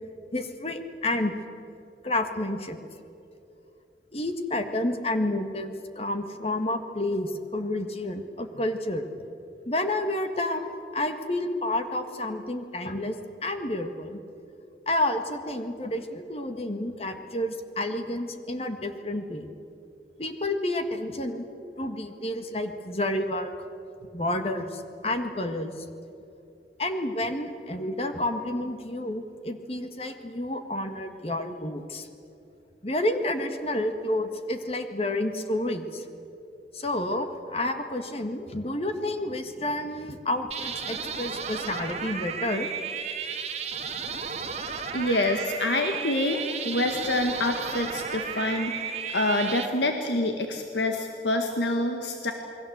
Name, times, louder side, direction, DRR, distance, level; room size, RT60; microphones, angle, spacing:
voice 1, 0.3-1.3 2.0-2.8 4.1-9.0 9.6-13.2 13.4-14.2 14.9-19.5 20.2-21.5 21.8-23.5 24.1-25.8 26.8-32.1 32.8-36.0 36.7-42.7, left 1 dB, 35° left, 7 dB, 1.7 m, -30 dB
sound 1, 40.5-49.7, right 6 dB, 40° right, 1.6 m, -34 dB
voice 2, 44.9-52.3, left 2 dB, 85° left, 4 dB, 1.8 m, -27 dB
28.0 x 21.5 x 8.0 m, 2.8 s
head